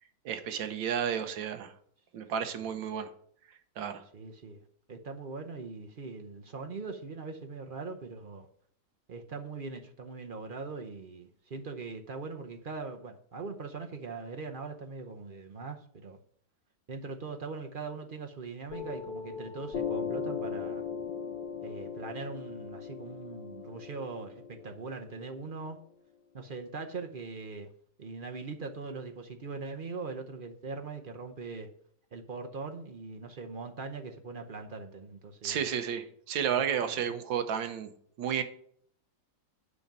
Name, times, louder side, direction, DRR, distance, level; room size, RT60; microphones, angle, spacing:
voice 1, 0.3-1.7 2.1-3.1 3.8-4.0 35.4-37.9 38.2-38.4, right 8 dB, 80° right, 1.6 m, -32 dB
voice 2, 4.1-4.6 4.9-8.5 9.1-16.2 16.9-20.8 21.6-25.8 26.3-27.7 28.0-31.7 32.1-35.7 36.5-37.1, right 4 dB, 55° right, 0.6 m, -41 dB
Piano, 18.7-25.8, left 6 dB, 65° left, 1.6 m, -38 dB
8.2 x 5.3 x 7.3 m
omnidirectional pair, 2.0 m